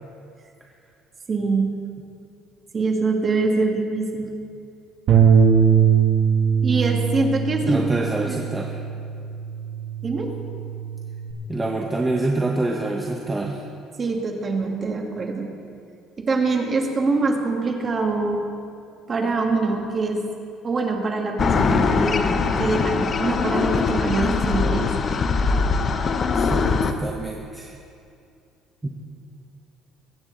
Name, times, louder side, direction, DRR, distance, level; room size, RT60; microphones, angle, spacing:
voice 1, 1.3-1.7 2.7-4.3 6.6-8.4 10.0-10.3 14.0-15.5 16.2-18.4 19.1-20.2 20.6-22.2 22.6-24.9, right 3 dB, 25° right, 1 dB, 1.6 m, -24 dB
Bass guitar, 5.1-11.3, right 7 dB, 55° right, 1.8 m, -21 dB
voice 2, 7.6-8.7 11.5-13.6 26.4-27.7 28.8-28.9, right 2 dB, 10° right, 0 dB, 0.8 m, -26 dB
sound 1, 21.4-26.9, left 4 dB, 30° left, 0.7 m, -21 dB
21.5 x 8.8 x 3.8 m, 2.5 s
cardioid pair, 150°, 0 cm